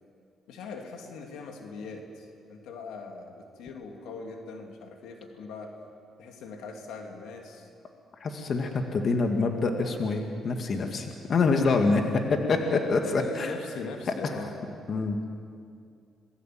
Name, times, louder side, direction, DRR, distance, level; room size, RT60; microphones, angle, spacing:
voice 1, 0.5-5.7 6.2-7.7 12.5-14.5, left 4 dB, 90° left, 3 dB, 2.9 m, -41 dB
voice 2, 8.2-12.0 12.3-13.5 14.2-14.3 14.9-15.2, left 3 dB, 50° left, 4 dB, 2.3 m, -26 dB
27.5 x 20.0 x 7.8 m, 2.4 s
cardioid pair, 90°, 0 cm